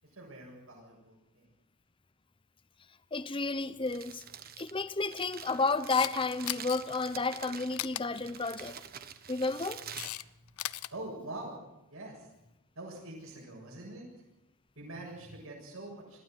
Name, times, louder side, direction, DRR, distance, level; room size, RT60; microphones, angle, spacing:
voice 1, 0.0-1.5 10.9-11.6 11.9-12.3 12.8-14.1 14.8-16.2, right 2 dB, 70° right, -2 dB, 7.1 m, -44 dB
voice 2, 3.1-4.2 4.6-8.8 9.3-9.8, left 3 dB, 25° left, 13 dB, 0.8 m, -31 dB
Crumpling crinkling, 3.6-11.0, right 8 dB, 40° right, 1.3 m, -47 dB
Camera, 5.7-6.1 6.5-6.8 7.8-8.0 9.3-10.2 10.5-10.9, left 14 dB, 75° left, 0.7 m, -37 dB
22.0 x 15.0 x 9.2 m, 0.91 s
head